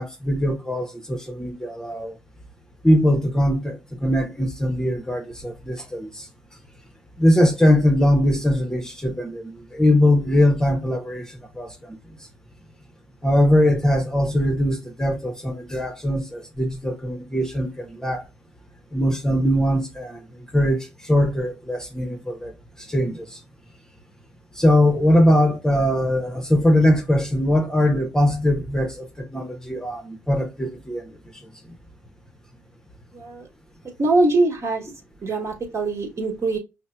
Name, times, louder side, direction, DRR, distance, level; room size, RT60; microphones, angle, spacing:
voice 1, 0.0-2.2 2.8-6.3 7.2-11.3 11.6-12.0 13.2-18.2 18.9-20.2 20.5-22.5 22.9-23.4 24.6-31.0, left 1 dB, 10° left, 0.8 m, -21 dB
voice 2, 33.1-33.5 34.0-34.8 35.2-36.6, right 2 dB, 45° right, 1.4 m, -22 dB
5.2 x 2.1 x 2.2 m
hypercardioid pair, 50°, 7 cm